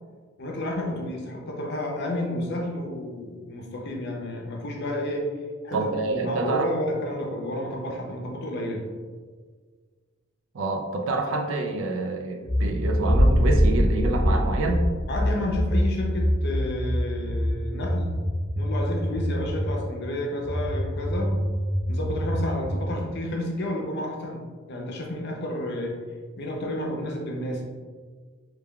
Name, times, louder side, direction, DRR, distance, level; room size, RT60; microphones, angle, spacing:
voice 1, 0.4-5.2 5.6-8.8 15.1-18.1 18.6-21.3 21.9-25.9 26.4-27.6, left 1 dB, 50° left, 0 dB, 0.6 m, -31 dB
voice 2, 5.7-6.7 10.5-14.8, right 3 dB, 65° right, 4 dB, 0.4 m, -27 dB
sound 1, 12.5-19.8 20.4-22.9, equal, 15° left, 0.9 m, -26 dB
Boom, 13.1-16.0, equal, 45° right, 1.5 m, -23 dB
3.6 x 3.2 x 2.3 m, 1.5 s
head